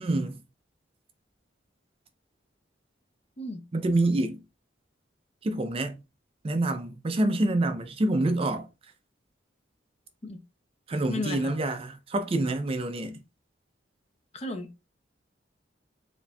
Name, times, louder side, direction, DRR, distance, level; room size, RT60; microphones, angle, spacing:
voice 1, 0.0-0.4 3.7-4.4 5.4-6.0 6.4-8.7 10.9-13.2, right 2 dB, 30° right, 0.4 m, -27 dB
voice 2, 11.1-11.5 14.3-14.8, left 2 dB, 35° left, 0.6 m, -34 dB
4.2 x 2.6 x 2.2 m
head